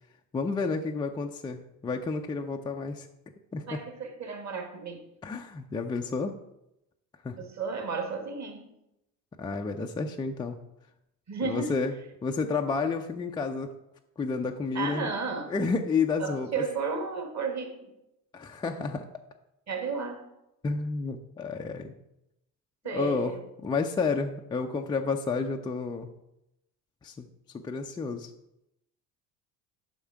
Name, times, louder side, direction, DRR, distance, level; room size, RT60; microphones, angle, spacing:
voice 1, 0.3-3.1 3.5-3.8 5.2-6.4 7.2-7.4 9.4-10.6 11.4-11.9 12.2-13.8 14.2-15.1 15.5-16.6 18.3-19.1 20.6-21.9 22.9-26.1 27.0-27.3 27.5-28.3, left 4 dB, 10° left, 2 dB, 0.3 m, -30 dB
voice 2, 3.7-5.1 7.4-8.7 11.3-11.8 14.7-15.5 16.2-17.9 19.7-20.3 22.8-23.4, right 5 dB, 35° right, 5 dB, 1.8 m, -33 dB
8.0 x 5.5 x 4.7 m, 0.86 s
hypercardioid pair, 65°, 49 cm